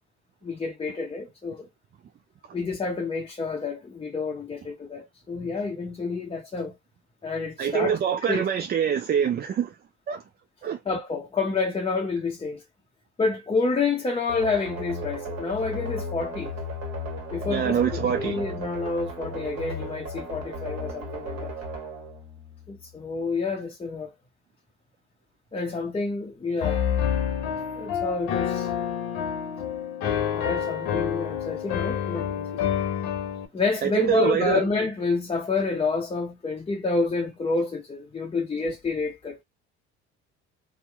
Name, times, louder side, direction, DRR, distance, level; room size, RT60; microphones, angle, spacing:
voice 1, 0.4-1.7 2.5-6.7 7.2-8.0 8.3-8.4 10.9-12.6 13.2-16.5 17.3-21.5 22.7-24.1 25.5-26.8 27.8-28.7 30.3-32.6 33.5-39.4, left 4 dB, 15° left, 0.6 m, -28 dB
voice 2, 7.6-9.8 10.1-10.2 10.6-10.8 17.5-18.4 33.8-34.6, right 8 dB, 30° right, 0.4 m, -25 dB
sound 1, 14.3-23.0, equal, 45° right, 1.2 m, -35 dB
Piano, 26.6-33.5, left 9 dB, 65° left, 0.8 m, -28 dB
2.8 x 2.1 x 3.3 m
hypercardioid pair, 60°, 34 cm